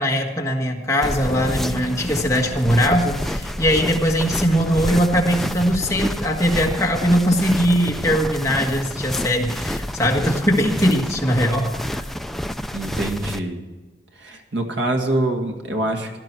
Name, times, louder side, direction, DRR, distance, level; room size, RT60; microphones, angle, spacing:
voice 1, 0.0-12.0, equal, 15° left, 0 dB, 1.5 m, -20 dB
sound 1, 1.0-13.4, equal, ahead, 0.4 m, -29 dB
Musical instrument, 1.2-9.1 9.3-9.5, left 2 dB, 55° left, 3.7 m, -42 dB
voice 2, 12.7-13.6 14.2-16.2, right 2 dB, 85° right, 4 dB, 2.0 m, -25 dB
17.0 x 12.5 x 4.6 m, 1.3 s
head